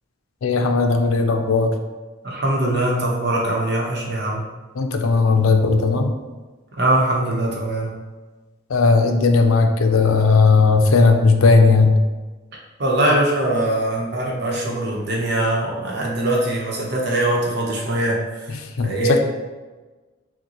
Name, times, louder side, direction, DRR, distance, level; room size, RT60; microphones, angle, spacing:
voice 1, 0.4-1.7 4.8-6.1 8.7-12.0 18.5-19.2, left 4 dB, 90° left, 5 dB, 0.5 m, -16 dB
voice 2, 2.2-4.4 6.8-8.0 12.8-18.2 18.8-19.2, right 1 dB, 55° right, -2 dB, 0.9 m, -21 dB
6.2 x 2.2 x 3.0 m, 1.3 s
head